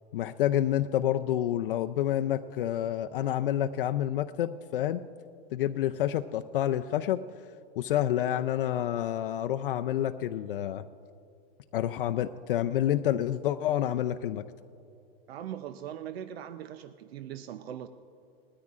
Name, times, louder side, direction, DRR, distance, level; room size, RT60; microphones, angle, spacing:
voice 1, 0.1-5.0 5.5-7.2 7.8-10.8 11.7-14.4, left 11 dB, 60° left, 7 dB, 0.5 m, -28 dB
voice 2, 15.3-17.9, right 10 dB, 85° right, 11 dB, 0.7 m, -40 dB
20.5 x 13.5 x 2.5 m, 2.6 s
supercardioid pair, 175°, 30 cm